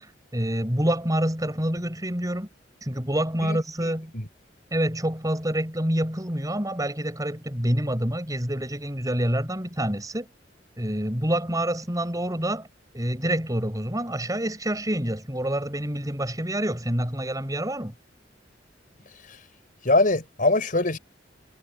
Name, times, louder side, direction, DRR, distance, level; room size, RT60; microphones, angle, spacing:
voice 1, 0.0-2.5 2.8-4.1 4.7-10.3 10.8-12.7 12.9-17.9, right 1 dB, 20° right, 7.8 m, -27 dB
voice 2, 19.8-21.0, left 2 dB, 50° left, 5.5 m, -22 dB
head